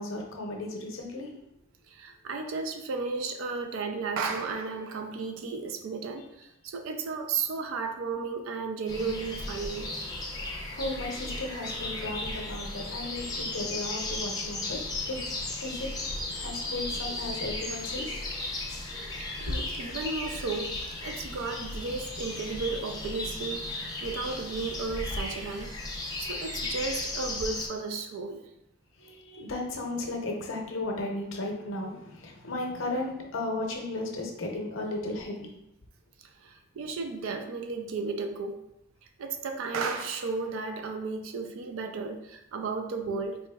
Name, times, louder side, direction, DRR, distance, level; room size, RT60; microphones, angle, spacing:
voice 1, 0.0-1.3 10.4-14.8 15.1-15.2 15.6-15.9 16.3-18.2 29.0-35.5, left 2 dB, 70° left, 1 dB, 0.7 m, -35 dB
voice 2, 1.9-9.9 10.5-10.7 19.2-20.7 21.0-25.7 26.2-28.4 36.2-38.6 39.2-43.4, right 4 dB, 75° right, 5 dB, 0.4 m, -34 dB
sound 1, 8.9-27.7, left 2 dB, 20° left, 0.5 m, -35 dB
4.1 x 2.9 x 2.2 m, 0.84 s
head